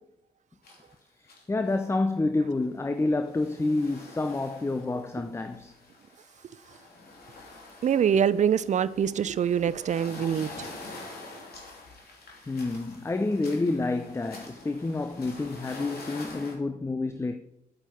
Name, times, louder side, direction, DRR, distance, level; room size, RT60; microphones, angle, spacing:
sound 1, 0.6-1.0 1.3-1.8 2.2-2.3 2.9-16.6, left 2 dB, 55° left, 2.9 m, -46 dB
voice 1, 1.2-5.7 12.5-17.4, left 2 dB, 15° left, 0.6 m, -28 dB
voice 2, 7.8-10.7, right 8 dB, 40° right, 0.5 m, -24 dB
8.9 x 8.8 x 4.4 m
figure-of-eight pair, 40°, 19 cm